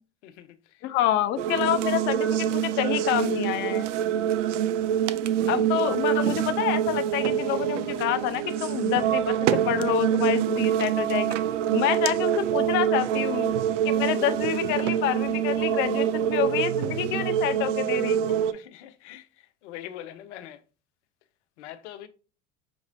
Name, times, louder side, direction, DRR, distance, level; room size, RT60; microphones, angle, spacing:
voice 1, 0.2-0.9 18.5-20.6 21.6-22.1, left 12 dB, 65° left, 0.6 m, -43 dB
voice 2, 0.8-3.9 5.5-9.4 9.7-11.4 11.7-13.5 13.8-18.4, left 12 dB, 35° left, 0.4 m, -27 dB
sound 1, 1.4-18.5, right 10 dB, 70° right, 0.5 m, -25 dB
6.0 x 3.0 x 2.5 m
figure-of-eight pair, 75°, 38 cm